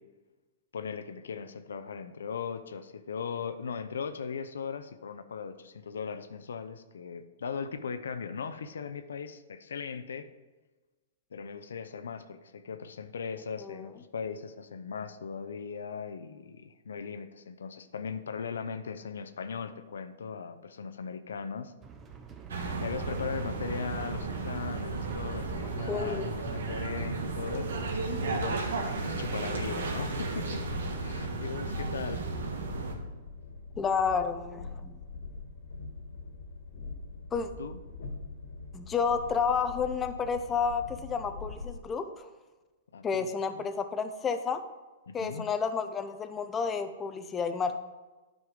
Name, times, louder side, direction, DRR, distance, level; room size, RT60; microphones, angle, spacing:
voice 1, 0.7-10.3 11.3-21.7 22.8-28.6 28.9-30.7 31.0-32.3 37.6-37.8 42.9-43.3 43.5-43.6 45.1-45.4, left 6 dB, 90° left, 10 dB, 0.6 m, -38 dB
sound 1, 21.8-28.9, right 6 dB, 20° right, 0.8 m, -47 dB
sound 2, 22.5-32.9, right 3 dB, 80° right, 1.4 m, -34 dB
voice 2, 25.6-26.3 33.8-34.9 37.3-37.5 38.7-42.3 43.0-44.6 45.1-47.7, left 5 dB, 15° left, 8 dB, 0.6 m, -31 dB
Train, 29.6-41.8, left 3 dB, 70° left, 1.6 m, -43 dB
9.5 x 5.5 x 4.9 m, 1.2 s
hypercardioid pair, 140°, 0 cm